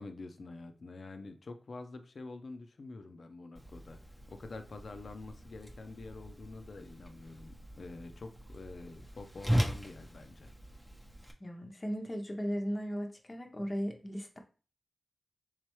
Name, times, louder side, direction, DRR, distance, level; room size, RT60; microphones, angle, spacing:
voice 1, 0.0-4.0 4.3-10.5, left 3 dB, 65° left, 7 dB, 0.5 m, -47 dB
Whoosh swoosh swish, 3.6-11.3, equal, ahead, 0.8 m, -39 dB
voice 2, 11.4-14.4, equal, 30° left, 4 dB, 0.7 m, -36 dB
3.5 x 3.2 x 3.0 m, 0.36 s
cardioid pair, 60°, 0 cm